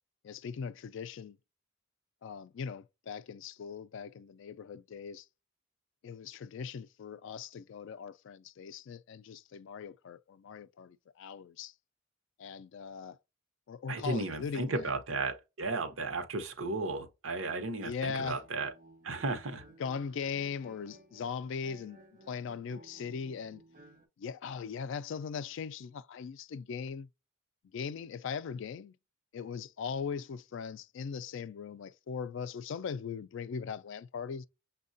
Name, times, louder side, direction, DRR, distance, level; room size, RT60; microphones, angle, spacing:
voice 1, 0.2-1.4 2.2-5.3 6.0-11.7 12.4-13.2 13.7-14.9 17.8-18.4 19.8-22.0 22.3-23.6 24.2-27.1 27.7-28.9 29.3-34.5, left 6 dB, 70° left, 0.3 m, -39 dB
voice 2, 13.9-18.7 19.0-19.6, right 3 dB, 85° right, 0.8 m, -34 dB
sound 1, 18.4-24.1, right 1 dB, 45° right, 0.8 m, -57 dB
6.3 x 2.2 x 2.5 m
head